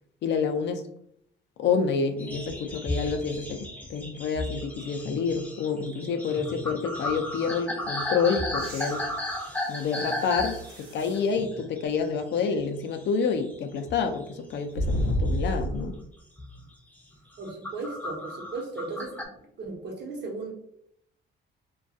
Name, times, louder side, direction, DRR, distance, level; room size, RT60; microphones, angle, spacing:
voice 1, 0.2-0.8 1.6-9.1 9.7-15.9, left 5 dB, 65° left, 7 dB, 0.4 m, -28 dB
sound 1, 2.2-12.6 12.9-13.6 13.9-15.4 15.8-16.0 16.4-16.6 17.1-19.2, left 1 dB, 10° left, 0.5 m, -35 dB
sound 2, 8.5-11.3 11.9-12.0 14.7-16.0 17.8-17.9, equal, 90° right, 0.9 m, -32 dB
voice 2, 17.4-19.3 19.6-20.5, right 3 dB, 60° right, 1 dB, 0.8 m, -36 dB
2.3 x 2.2 x 2.6 m, 0.71 s
cardioid pair, 90°, 20 cm